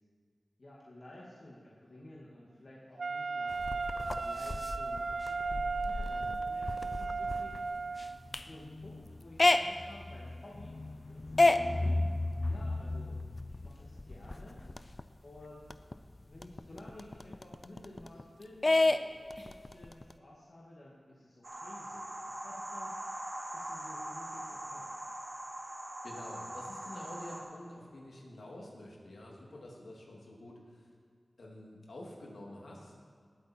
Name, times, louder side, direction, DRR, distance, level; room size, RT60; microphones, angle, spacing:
voice 1, 0.6-3.5 4.2-7.6 8.4-10.8 11.1-12.0 12.5-13.2 13.5-14.6 15.2-15.6 16.3-22.9 23.5-24.9, left 1 dB, 55° left, -5 dB, 2.0 m, -53 dB
Wind instrument woodwind instrument, 3.0-8.2, right 4 dB, 65° right, 0.6 m, -36 dB
sound 1, 3.5-15.0 15.4-15.5 15.7-18.2 18.6-20.1, left 2 dB, 40° left, 0.5 m, -32 dB
sound 2, 21.4-27.4, right 1 dB, 40° right, 2.2 m, -42 dB
voice 2, 26.0-30.9 31.4-33.0, left 1 dB, 80° left, -2 dB, 2.6 m, -48 dB
19.0 x 8.3 x 4.5 m, 2.1 s
wide cardioid pair, 70°, 0 cm